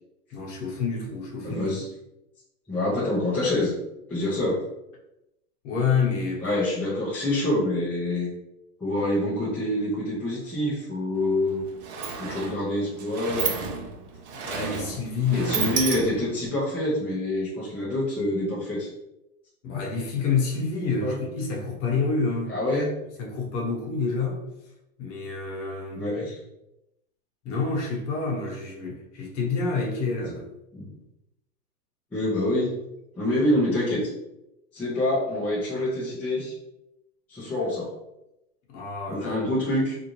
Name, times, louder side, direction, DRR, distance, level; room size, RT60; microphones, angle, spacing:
voice 1, 0.3-1.8 5.6-6.5 14.3-15.6 19.6-22.6 23.2-24.4 25.0-26.1 27.4-30.5 38.7-39.5, left 4 dB, 50° left, 1.0 m, -28 dB
voice 2, 1.4-1.9 2.7-3.7 4.1-4.6 6.4-8.3 8.8-11.6 12.2-13.6 15.3-18.9 21.0-21.2 22.5-22.9 26.0-26.4 30.7-30.9 32.1-32.8 33.2-34.1 34.7-36.5 37.3-37.9 39.1-39.9, left 1 dB, 5° left, 0.5 m, -26 dB
Sliding door, 11.2-11.3 11.5-16.5, right 6 dB, 50° right, 0.6 m, -32 dB
3.6 x 2.6 x 3.0 m
supercardioid pair, 155°, 44 cm